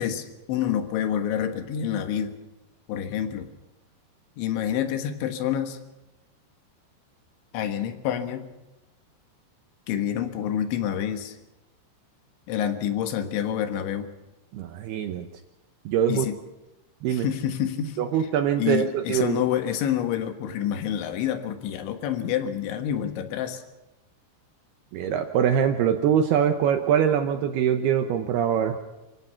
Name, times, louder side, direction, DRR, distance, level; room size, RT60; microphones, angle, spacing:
voice 1, 0.0-2.4 2.9-3.5 4.4-5.8 7.5-8.5 9.9-11.4 12.5-14.1 16.1-16.4 17.1-18.0 18.6-23.6, left 9 dB, 70° left, 7 dB, 3.7 m, -28 dB
voice 2, 14.5-15.3 15.9-16.3 17.0-17.3 18.0-19.5 24.9-28.8, right 9 dB, 85° right, 6 dB, 2.3 m, -23 dB
28.0 x 16.5 x 5.8 m, 1.0 s
omnidirectional pair, 5.9 m